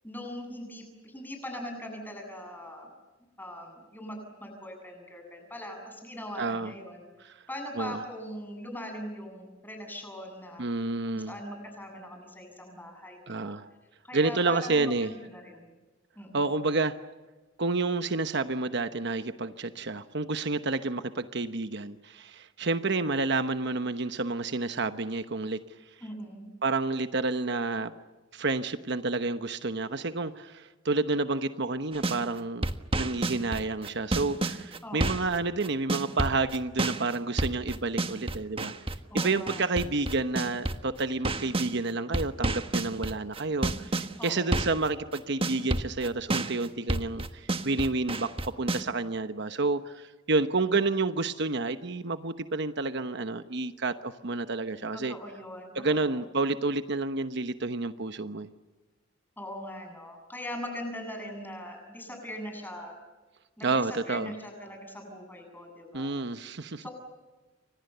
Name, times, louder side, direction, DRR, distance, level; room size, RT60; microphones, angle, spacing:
voice 1, 0.0-2.9 3.4-7.0 7.5-10.7 11.1-13.6 14.0-14.9 15.3-15.6 16.2-16.4 26.0-26.5 34.8-35.2 39.1-39.7 44.2-44.6 54.9-55.7 56.0-56.2 59.4-63.0 63.6-66.1 66.8-66.9, left 1 dB, 10° left, 4 dB, 7.7 m, -41 dB
voice 2, 6.4-6.7 7.2-7.4 7.8-8.0 10.6-11.3 13.3-13.7 14.1-15.1 16.3-17.0 17.6-25.6 26.6-27.9 28.3-32.7 33.0-38.7 39.1-55.2 55.7-58.5 63.6-64.3 65.9-66.8, right 3 dB, 60° right, 10 dB, 1.0 m, -29 dB
sound 1, 31.9-32.2 32.6-41.7 42.1-44.9 45.1-48.8, right 2 dB, 30° right, 1.4 m, -30 dB
30.0 x 25.5 x 6.9 m, 1.2 s
head